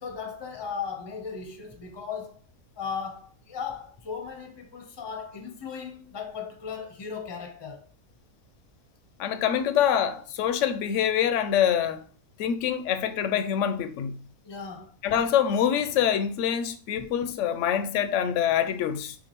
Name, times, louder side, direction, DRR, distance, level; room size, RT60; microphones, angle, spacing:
voice 1, 0.0-2.4 2.8-7.9 14.4-15.0 17.0-17.1, left 6 dB, 30° left, 0.5 m, -37 dB
voice 2, 9.2-12.1 12.4-14.2 15.0-19.2, left 9 dB, 65° left, 0.8 m, -25 dB
6.5 x 2.4 x 2.9 m
omnidirectional pair, 1.6 m